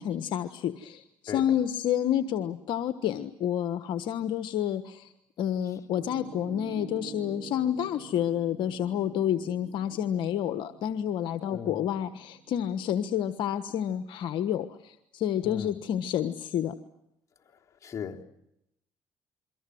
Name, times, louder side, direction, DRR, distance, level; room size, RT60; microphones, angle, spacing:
voice 1, 0.0-5.1 5.4-16.7, left 10 dB, 70° left, 1.3 m, -29 dB
Piano, 5.9-13.8, right 8 dB, 65° right, 3.0 m, -48 dB
voice 2, 11.4-11.9 15.4-15.8 17.8-18.2, left 7 dB, 40° left, 3.4 m, -37 dB
29.0 x 24.0 x 7.8 m
supercardioid pair, 80°, 8 cm